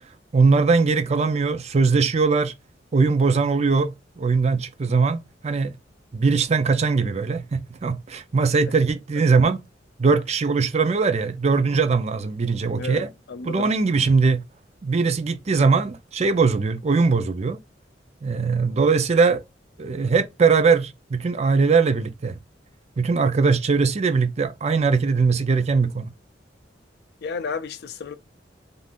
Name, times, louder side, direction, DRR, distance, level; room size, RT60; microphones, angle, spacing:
voice 1, 0.3-2.5 2.9-5.7 6.1-9.6 10.0-13.1 13.4-14.4 14.8-17.6 18.2-19.4 19.8-22.4 23.0-26.1, right 4 dB, 35° right, 0.4 m, -21 dB
voice 2, 12.8-13.7 27.2-28.2, left 4 dB, 60° left, 0.4 m, -32 dB
2.6 x 2.5 x 3.4 m
head